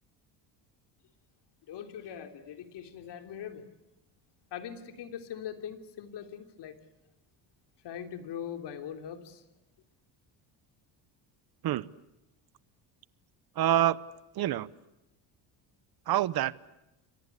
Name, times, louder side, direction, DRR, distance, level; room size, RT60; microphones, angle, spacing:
voice 1, 1.7-3.7 4.5-6.8 7.8-9.4, left 9 dB, 65° left, 6 dB, 3.4 m, -41 dB
voice 2, 13.6-14.0 14.3-14.7 16.1-16.5, right 12 dB, 55° right, 19 dB, 0.9 m, -26 dB
29.0 x 24.0 x 8.4 m, 0.95 s
cardioid pair, 100°, 45 cm